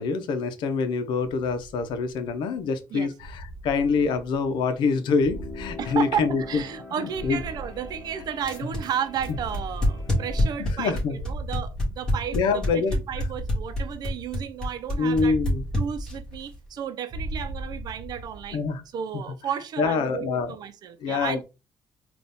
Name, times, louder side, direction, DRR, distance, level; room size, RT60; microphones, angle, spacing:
voice 1, 0.0-6.6 7.2-7.4 10.6-11.2 12.3-13.0 15.0-15.6 18.5-18.8 19.8-20.5 21.0-21.4, left 4 dB, 80° left, 0.7 m, -25 dB
sound 1, 1.6-2.5 3.2-4.7 5.2-6.8 7.1-8.7 9.1-10.8 11.1-12.8 13.1-14.7 15.1-16.8 17.1-18.7, right 1 dB, 30° right, 1.1 m, -39 dB
sound 2, 4.9-10.7, left 3 dB, 35° left, 1.6 m, -43 dB
voice 2, 5.8-15.4 15.8-18.6 18.9-21.4, right 8 dB, 60° right, 0.7 m, -33 dB
sound 3, 8.4-16.3, left 1 dB, 10° left, 2.0 m, -26 dB
4.0 x 2.5 x 3.5 m
cardioid pair, 125°, 8 cm